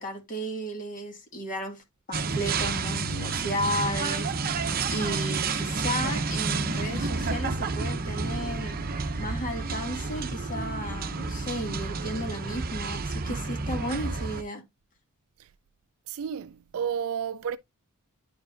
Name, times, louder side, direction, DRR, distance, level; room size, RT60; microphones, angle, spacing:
voice 1, 0.0-1.8 2.1-8.8 9.2-14.6, equal, 40° left, 2.0 m, -34 dB
sound 1, 2.1-14.4, right 4 dB, 40° right, 0.7 m, -30 dB
voice 2, 16.1-17.6, right 8 dB, 65° right, 0.4 m, -32 dB
10.5 x 4.8 x 2.6 m
head